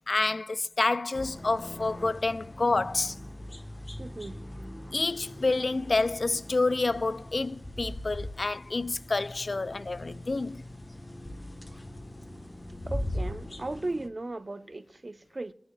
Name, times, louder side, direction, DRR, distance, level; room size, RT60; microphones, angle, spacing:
voice 1, 0.1-3.2 4.9-10.6, left 3 dB, 70° left, 0.3 m, -28 dB
sound 1, 1.1-14.1, left 1 dB, 30° left, 1.1 m, -40 dB
voice 2, 4.0-4.4 12.9-15.5, right 2 dB, 55° right, 0.6 m, -36 dB
23.5 x 9.7 x 2.3 m
wide cardioid pair, 50°, 0 cm